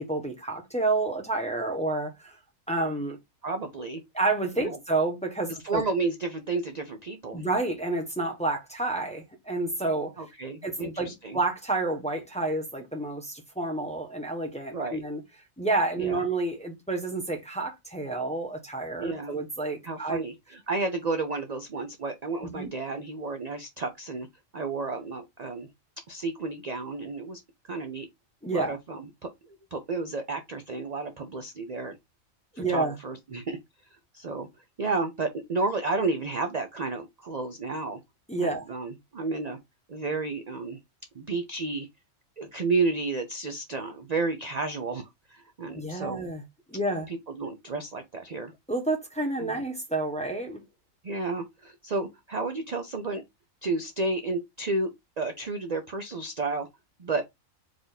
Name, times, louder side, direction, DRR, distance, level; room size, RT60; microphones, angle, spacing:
voice 1, 0.0-2.4 2.7-3.2 4.1-5.8 7.3-10.1 10.6-15.2 15.6-20.2 22.4-22.7 28.4-28.7 32.6-32.9 38.3-38.6 45.7-46.4 46.7-47.1 48.7-50.6, right 2 dB, 5° left, 0.9 m, -29 dB
voice 2, 3.4-4.0 4.6-4.8 5.6-7.5 10.2-11.4 14.7-15.0 16.0-16.2 19.0-19.4 19.8-24.3 24.5-25.7 26.1-27.4 27.7-28.1 28.5-32.0 32.6-33.6 34.1-34.5 34.8-38.0 38.4-39.6 39.9-40.8 41.1-41.9 42.4-46.2 47.1-48.5 49.4-49.6 51.0-53.2 53.6-54.9 55.2-56.7 57.0-57.2, right 3 dB, 45° right, 0.6 m, -31 dB
4.8 x 2.5 x 4.0 m
omnidirectional pair, 1.4 m